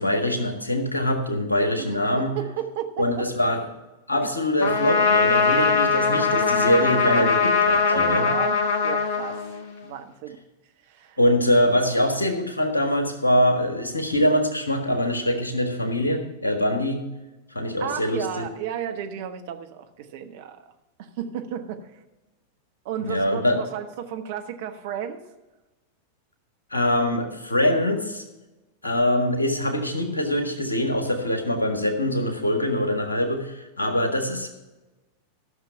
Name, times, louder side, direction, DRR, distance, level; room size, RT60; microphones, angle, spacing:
voice 1, 0.0-2.3 3.0-3.6 4.1-8.3 11.2-17.0 17.5-18.4 23.0-23.6 26.7-28.2 28.8-34.5, left 1 dB, 80° left, 5 dB, 1.6 m, -23 dB
voice 2, 1.8-3.3 4.2-4.3 7.9-9.5 9.8-10.4 10.8-11.2 17.8-20.6 21.0-22.0 22.8-25.3, right 9 dB, 50° right, 6 dB, 1.2 m, -33 dB
Trumpet, 4.6-9.9, left 5 dB, 50° left, 1.4 m, -21 dB
14.0 x 6.6 x 5.6 m, 1.1 s
figure-of-eight pair, 90°, 0 cm